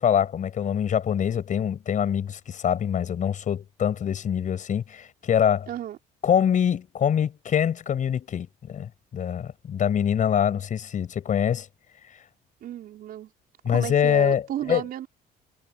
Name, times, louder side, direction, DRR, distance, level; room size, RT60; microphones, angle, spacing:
voice 1, 0.0-5.7 6.2-11.7 13.6-14.4 14.7-14.8, left 8 dB, 50° left, 6.3 m, -24 dB
voice 2, 5.7-6.0 12.6-13.3 13.6-15.1, right 11 dB, 65° right, 4.4 m, -33 dB
cardioid pair, 110°, 17 cm